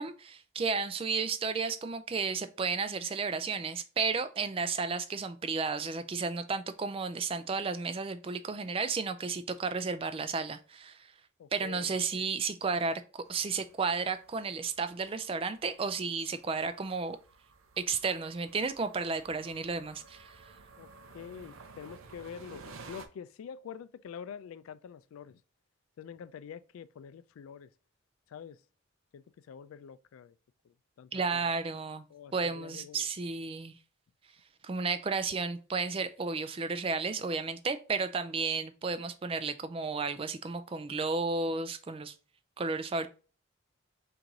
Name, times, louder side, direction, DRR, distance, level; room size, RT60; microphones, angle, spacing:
voice 1, 0.0-11.1 11.5-13.0 13.3-17.2 17.8-20.5 31.1-32.0 32.3-33.7 34.6-42.1 42.6-43.1, right 4 dB, 25° right, 0.3 m, -33 dB
voice 2, 11.4-12.3 20.8-20.9 21.1-25.4 26.0-27.7 28.3-28.6 29.1-30.3 30.6-31.5 32.1-33.1, left 7 dB, 90° left, 0.3 m, -46 dB
sound 1, 13.2-23.1, right 4 dB, 90° right, 0.6 m, -54 dB
4.5 x 2.6 x 3.8 m
head